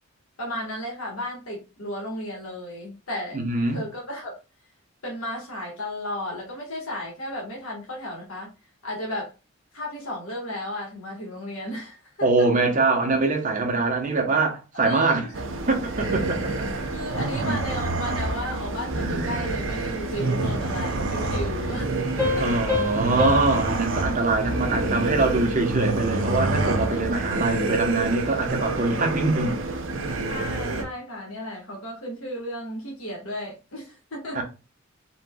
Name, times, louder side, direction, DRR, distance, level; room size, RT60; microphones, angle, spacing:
voice 1, 0.4-3.4 3.7-4.3 5.0-8.5 8.8-9.3 9.7-12.5 14.7-15.3 16.9-22.5 24.6-24.8 30.2-34.4, left 1 dB, 75° left, 1.6 m, -34 dB
voice 2, 3.3-3.8 12.2-15.3 15.7-16.5 22.4-29.6 34.3-34.4, right 3 dB, 35° right, 1.0 m, -23 dB
sound 1, 15.3-30.8, right 2 dB, 60° right, 0.7 m, -27 dB
sound 2, 22.2-25.5, left 3 dB, 15° left, 1.8 m, -29 dB
4.3 x 3.8 x 2.3 m
head